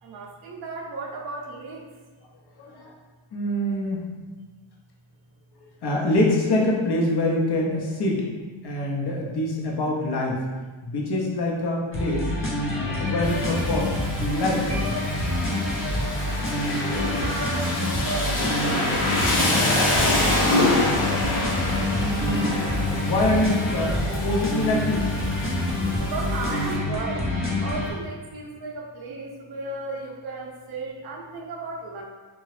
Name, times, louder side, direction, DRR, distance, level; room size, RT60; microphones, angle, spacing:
voice 1, 0.0-1.9 15.7-16.3 17.2-19.7 25.1-25.5 26.0-27.3 27.6-32.0, right 3 dB, 55° right, -1 dB, 0.5 m, -36 dB
voice 2, 2.6-2.9 3.3-4.1 5.6-8.3 8.6-10.4 10.8-12.3 12.7-13.9 14.3-15.0 21.9-25.1, left 1 dB, 55° left, -2 dB, 0.7 m, -25 dB
sound 1, 11.9-27.9, left 1 dB, 25° left, 0.7 m, -27 dB
Rain, 13.2-26.7, left 1 dB, 90° left, 1.0 m, -27 dB
2.8 x 2.3 x 3.1 m, 1.3 s
cardioid pair, 90°, 48 cm